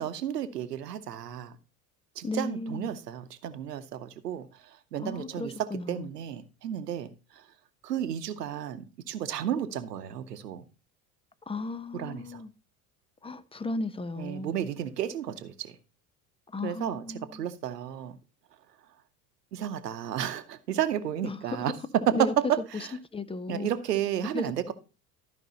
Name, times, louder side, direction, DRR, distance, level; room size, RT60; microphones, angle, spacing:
voice 1, 0.0-1.6 2.2-7.4 7.8-10.6 11.9-12.4 14.2-15.8 16.6-17.0 17.3-18.2 19.5-21.7 22.5-22.9 23.5-24.7, right 10 dB, 85° right, 1.0 m, -33 dB
voice 2, 2.2-2.9 5.0-6.1 11.5-12.5 13.2-14.6 16.5-17.5 21.2-21.7 22.1-22.3 22.7-22.9 23.1-23.7 24.3-24.5, left 2 dB, 10° left, 0.8 m, -35 dB
13.0 x 5.3 x 4.1 m
hypercardioid pair, 70°, 47 cm